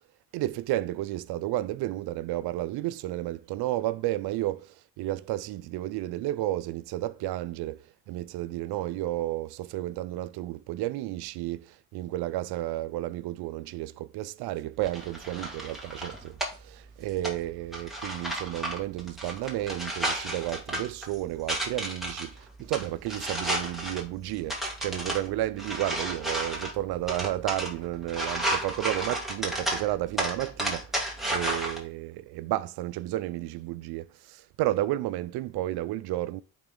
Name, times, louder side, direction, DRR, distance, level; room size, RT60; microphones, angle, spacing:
voice 1, 0.3-7.8 8.1-22.3 22.6-31.0 31.3-36.4, right 15 dB, 85° right, 0.5 m, -32 dB
sound 1, 14.8-31.8, right 1 dB, ahead, 2.8 m, -33 dB
10.5 x 4.0 x 3.8 m
supercardioid pair, 65°, 38 cm